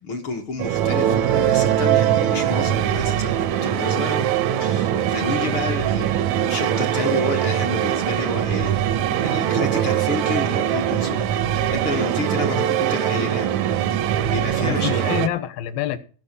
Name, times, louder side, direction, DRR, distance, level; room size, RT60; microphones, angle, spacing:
voice 1, 0.0-4.2 4.6-8.7 9.2-13.5 13.9-15.0, left 3 dB, 55° left, 1.5 m, -30 dB
sound 1, 0.6-15.3, right 10 dB, 80° right, 1.6 m, -22 dB
voice 2, 5.2-5.6 12.4-12.7 14.7-16.0, left 11 dB, 80° left, 2.8 m, -28 dB
15.5 x 5.6 x 6.7 m
omnidirectional pair, 4.2 m